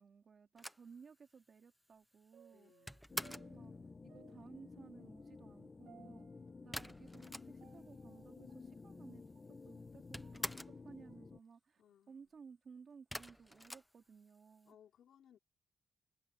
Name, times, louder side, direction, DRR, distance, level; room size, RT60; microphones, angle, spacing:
voice 1, 0.0-2.9 3.5-3.7 4.0-6.3 6.6-10.6 10.8-11.8 12.1-14.8, right 5 dB, 40° right, 3.0 m, -58 dB
sound 1, 0.6-3.6 6.7-7.9 8.2-8.3 8.4-9.2 9.5-10.9 13.1-14.6, equal, ahead, 0.9 m, -47 dB
sound 2, 2.3-9.6 10.0-11.3 11.8-11.9, right 9 dB, 85° right, 2.4 m, -66 dB
voice 2, 2.5-3.1 11.8-12.3 14.6-15.4, left 9 dB, 70° left, 3.9 m, -66 dB
sound 3, 3.1-11.4, left 4 dB, 25° left, 1.8 m, -53 dB
wide cardioid pair, 175°, 0 cm